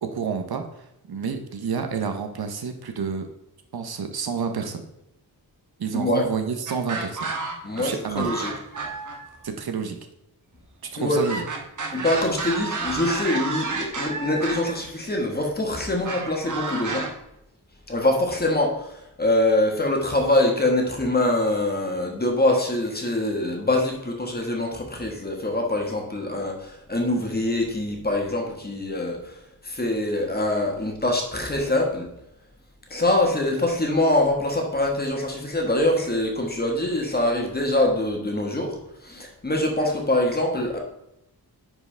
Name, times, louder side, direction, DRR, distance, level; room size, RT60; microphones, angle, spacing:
voice 1, 0.0-3.3 3.7-4.9 5.8-7.3 7.8-8.3 9.4-10.0 10.9-11.4, right 6 dB, 70° right, 6 dB, 0.9 m, -29 dB
voice 2, 5.9-6.2 7.6-8.5 11.0-11.2 11.9-17.1 17.9-32.1 32.9-40.8, left 1 dB, 25° left, 0 dB, 1.5 m, -24 dB
sound 1, 6.7-7.9 8.2-9.3 11.1-14.7 16.1-17.1, right 4 dB, 50° right, 1.2 m, -30 dB
9.9 x 4.8 x 3.3 m, 0.83 s
wide cardioid pair, 150°, 39 cm